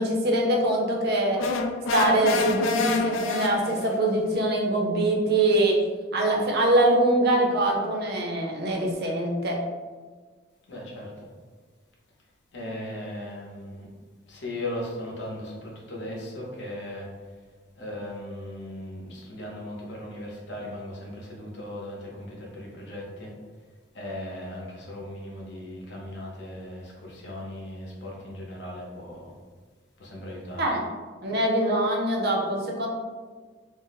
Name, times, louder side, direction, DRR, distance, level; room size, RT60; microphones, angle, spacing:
voice 1, 0.0-1.4 1.9-5.8 6.1-9.6 30.6-30.8 31.2-32.9, right 1 dB, 55° right, -1 dB, 0.6 m, -23 dB
sound 1, 1.4-4.0, left 3 dB, 85° left, 0.3 m, -28 dB
voice 2, 10.7-11.3 12.5-13.9 14.3-17.1 17.8-23.3 23.9-29.3 30.0-30.7, left 1 dB, 65° left, -2 dB, 0.8 m, -37 dB
2.6 x 2.1 x 3.9 m, 1.4 s
head